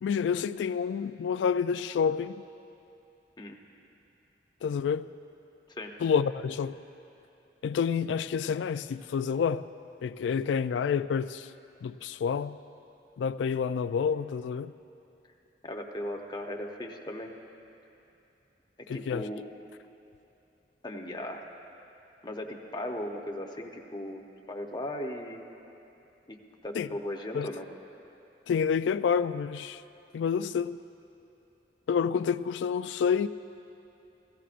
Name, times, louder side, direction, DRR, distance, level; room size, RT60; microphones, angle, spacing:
voice 1, 0.0-2.4 4.6-5.1 6.0-6.8 7.6-9.7 10.0-11.5 11.8-12.6 13.2-14.7 18.9-19.3 26.7-26.9 27.3-27.5 28.5-29.8 30.1-30.8 31.9-33.3, left 6 dB, 90° left, 0.3 m, -28 dB
voice 2, 15.6-17.3 18.9-19.4 20.8-21.4 22.2-25.4 26.3-26.4 26.6-27.7, left 1 dB, 25° left, 0.8 m, -37 dB
16.5 x 15.0 x 2.5 m
head